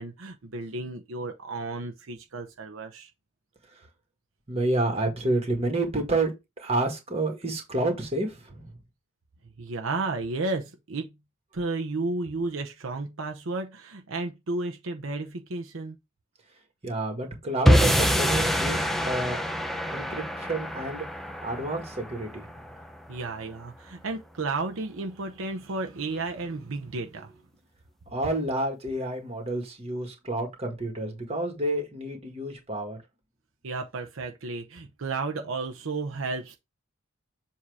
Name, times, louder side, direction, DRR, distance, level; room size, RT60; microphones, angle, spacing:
voice 1, 0.0-3.1 9.6-11.1 11.5-16.0 23.1-27.3 33.6-36.6, right 3 dB, 75° right, 0.8 m, -33 dB
voice 2, 4.5-8.7 16.8-19.4 19.9-21.1 21.4-22.5 28.1-33.0, right 2 dB, 30° right, 1.6 m, -29 dB
sound 1, 17.7-24.0, equal, ahead, 0.6 m, -26 dB
7.4 x 2.8 x 4.7 m
head